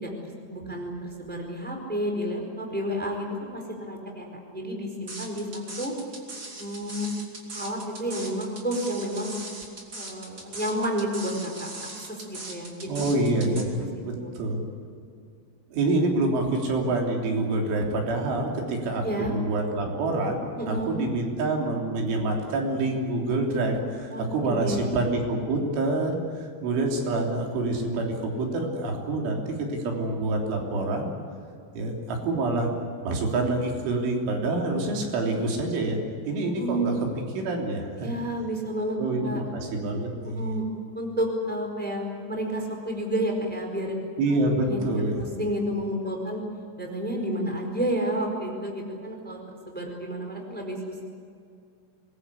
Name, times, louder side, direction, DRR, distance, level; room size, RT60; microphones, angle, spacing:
voice 1, 0.0-5.9 6.6-7.1 7.5-9.4 9.9-11.7 12.1-12.9 13.4-13.5 14.2-14.3 19.0-19.3 20.6-21.0 24.1-24.9 36.5-36.9 38.0-39.0 39.2-39.4 40.2-40.6 40.9-44.0 44.6-44.8 45.1-46.4 46.8-49.4 49.7-51.0, equal, ahead, 2 dB, 3.8 m, -30 dB
sound 1, 5.1-13.6, right 2 dB, 25° right, 3.1 m, -39 dB
voice 2, 12.9-14.6 15.7-31.1 31.8-32.7 33.0-36.0 36.3-36.9 37.3-38.1 39.0-40.5 44.2-45.3, right 2 dB, 90° right, 1 dB, 5.9 m, -27 dB
24.5 x 21.0 x 8.4 m, 2.3 s
omnidirectional pair, 5.4 m